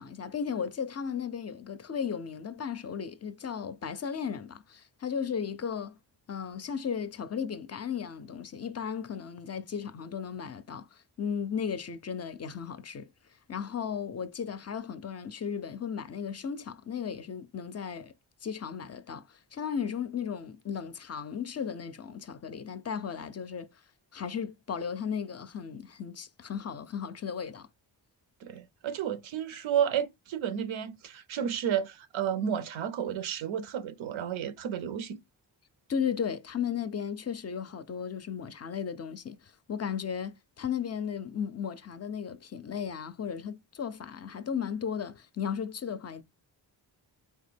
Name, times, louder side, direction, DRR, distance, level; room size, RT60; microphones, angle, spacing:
voice 1, 0.0-6.0 6.3-10.9 11.2-13.1 13.5-18.1 18.4-23.7 24.1-27.7 35.9-39.4 39.7-46.2, left 7 dB, 35° left, 0.4 m, -35 dB
voice 2, 28.4-35.2, right 9 dB, 85° right, 0.6 m, -32 dB
3.4 x 2.1 x 3.3 m
cardioid pair, 45°, 46 cm